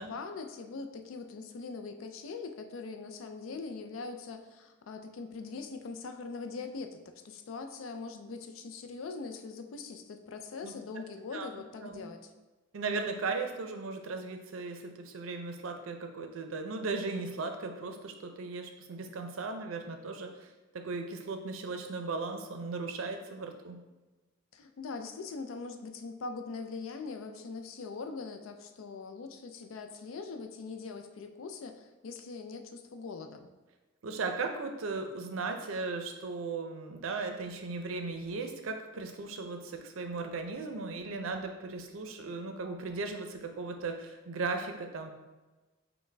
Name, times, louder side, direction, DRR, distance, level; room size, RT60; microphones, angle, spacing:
voice 1, 0.0-7.0 7.2-12.3 24.5-33.5, left 4 dB, 80° left, 6 dB, 0.4 m, -42 dB
voice 2, 12.7-20.5 20.7-23.8 34.0-45.1, right 3 dB, 85° right, 5 dB, 0.5 m, -37 dB
5.6 x 2.1 x 3.2 m, 1.2 s
head